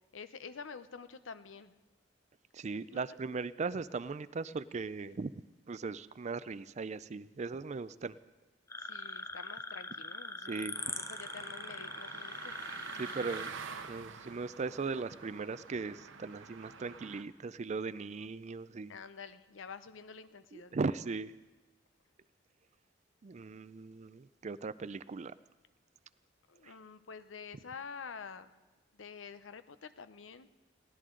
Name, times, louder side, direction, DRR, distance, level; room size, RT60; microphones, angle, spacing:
voice 1, 0.1-1.8 2.9-3.4 5.0-5.1 8.8-12.6 18.9-20.8 26.5-28.5 28.9-30.5, left 5 dB, 85° left, 12 dB, 0.7 m, -48 dB
voice 2, 2.5-5.3 5.7-8.2 10.5-10.8 13.0-13.5 13.8-19.0 20.5-21.3 23.2-25.3 26.6-26.7, right 4 dB, 35° right, 16 dB, 0.4 m, -38 dB
sound 1, 8.7-13.5, left 3 dB, 15° left, 0.5 m, -42 dB
sound 2, 10.7-17.2, right 5 dB, 90° right, 1.0 m, -47 dB
21.5 x 16.5 x 3.8 m, 1.2 s
head